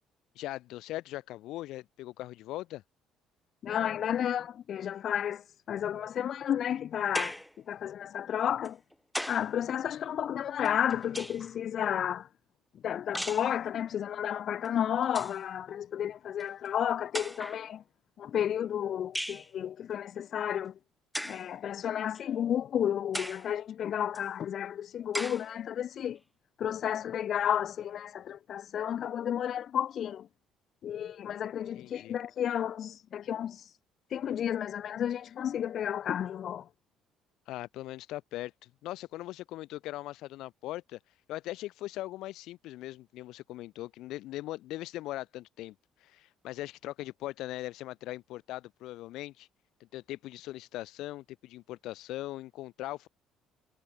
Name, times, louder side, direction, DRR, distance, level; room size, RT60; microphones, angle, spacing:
voice 1, 0.3-2.8 31.7-32.1 37.5-41.0 41.3-45.7 46.0-49.5 49.8-53.1, left 16 dB, 70° left, 2.7 m, -40 dB
voice 2, 3.6-7.4 7.7-8.8 9.3-12.3 12.7-17.8 18.2-20.8 21.2-26.2 26.6-30.3 30.8-33.6 34.1-36.7, left 9 dB, 45° left, 0.3 m, -32 dB
sound 1, 7.1-7.6 8.6-9.5 10.6-11.6 13.1-13.5 14.6-14.7 15.0-15.4 16.4-16.5 17.1-17.6 19.1-19.5 21.1-21.5 22.1-22.2 23.1-23.5 24.1-24.2 25.1-25.5, equal, ahead, 1.1 m, -37 dB
cardioid pair, 155°, 0 cm